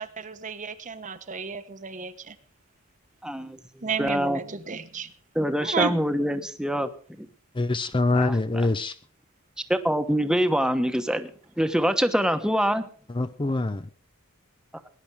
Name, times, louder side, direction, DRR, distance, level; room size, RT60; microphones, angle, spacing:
voice 1, 0.0-2.3 3.8-5.1 5.6-5.9, right 5 dB, 35° right, 10 dB, 1.1 m, -32 dB
voice 2, 3.2-4.4 5.3-6.9 7.2-7.3 8.1-8.7 9.7-11.3 11.6-12.9, equal, 5° right, 8 dB, 1.2 m, -25 dB
voice 3, 7.5-8.9 13.1-13.9, left 2 dB, 25° left, 11 dB, 0.6 m, -24 dB
19.0 x 10.5 x 4.8 m, 0.42 s
head